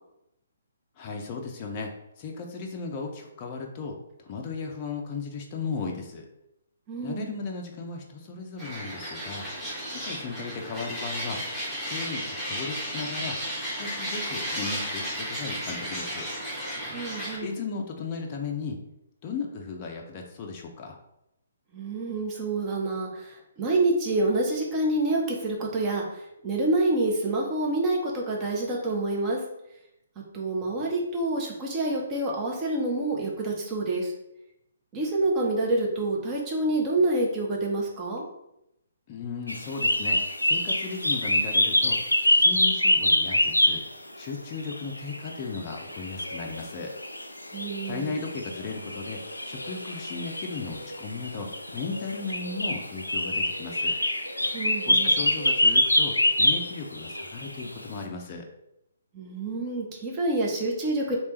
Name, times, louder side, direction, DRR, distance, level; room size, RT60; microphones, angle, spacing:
voice 1, 1.0-1.9 2.2-6.3 7.0-9.5 9.9-11.4 11.8-13.4 13.6-16.3 17.4-18.8 19.2-21.0 39.1-42.0 42.3-43.8 44.2-46.9 47.8-49.2 49.5-54.0 54.8-58.5, left 4 dB, 30° left, 1 dB, 0.5 m, -36 dB
voice 2, 6.9-7.3 16.9-17.5 21.7-29.4 30.3-34.1 34.9-38.2 47.5-48.2 54.5-55.2 59.1-61.2, right 2 dB, 20° right, -2 dB, 0.8 m, -27 dB
sound 1, 8.6-17.4, equal, ahead, 1.2 m, -33 dB
sound 2, 39.5-43.9 44.5-57.8, left 1 dB, 85° left, 0.4 m, -25 dB
3.2 x 2.9 x 3.1 m, 0.83 s
figure-of-eight pair, 130°, 0 cm